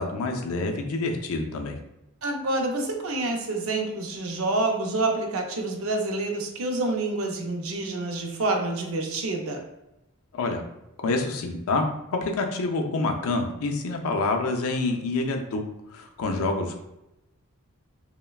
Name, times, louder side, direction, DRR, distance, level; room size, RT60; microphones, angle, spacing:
voice 1, 0.0-1.8 10.3-10.6 11.0-11.8 12.1-15.6 15.9-16.8, left 3 dB, 70° left, 3 dB, 0.4 m, -27 dB
voice 2, 2.2-9.6, right 2 dB, 65° right, 3 dB, 0.5 m, -27 dB
3.1 x 2.1 x 2.2 m, 0.89 s
head